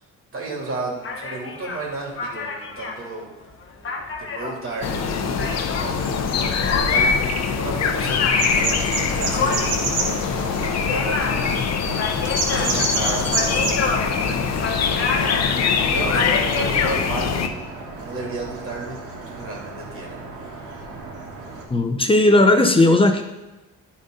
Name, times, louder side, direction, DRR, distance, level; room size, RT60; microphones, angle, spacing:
voice 1, 0.3-3.3 4.2-15.5 15.8-17.6 17.9-20.5, right 2 dB, 45° right, -2 dB, 3.0 m, -33 dB
sound 1, 1.0-6.0 6.6-17.0, left 4 dB, 45° left, 1.3 m, -30 dB
sound 2, 4.8-17.5, left 6 dB, 60° left, 0.8 m, -23 dB
sound 3, 8.4-21.6, right 3 dB, 80° right, 2.0 m, -31 dB
voice 2, 21.7-23.2, left 2 dB, 20° left, 5 dB, 0.9 m, -16 dB
12.0 x 4.2 x 3.9 m, 1.0 s
cardioid pair, 90°, 30 cm